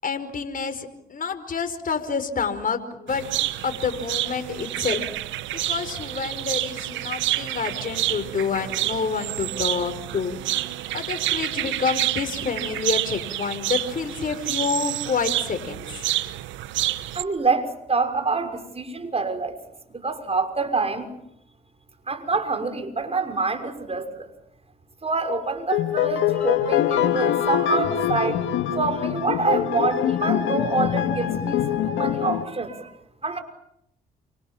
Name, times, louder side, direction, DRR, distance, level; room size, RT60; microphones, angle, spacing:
voice 1, 0.0-3.2 3.6-5.1 5.5-10.4 10.9-15.8, left 5 dB, 45° left, 8 dB, 5.2 m, -28 dB
sound 1, 3.1-17.2, right 14 dB, 75° right, 1.2 m, -28 dB
voice 2, 17.1-19.6 19.9-21.1 22.1-24.3 25.0-28.5 28.7-32.9 33.2-33.4, right 4 dB, 30° right, 7 dB, 6.2 m, -26 dB
sound 2, 25.7-32.5, left 10 dB, 75° left, 2.1 m, -24 dB
29.0 x 25.5 x 7.5 m, 0.78 s
hypercardioid pair, 55°, 20 cm